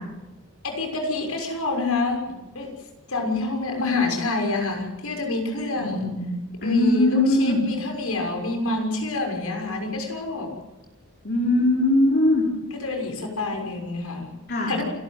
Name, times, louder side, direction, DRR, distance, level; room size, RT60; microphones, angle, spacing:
voice 1, 0.6-2.7 3.1-6.2 6.6-10.5 12.7-14.3 14.7-14.8, left 2 dB, 80° left, 3 dB, 6.3 m, -27 dB
voice 2, 5.8-6.3 6.6-7.6 11.2-12.4 14.5-14.7, left 1 dB, 50° left, -1 dB, 4.2 m, -20 dB
28.0 x 13.5 x 9.1 m, 1.0 s
head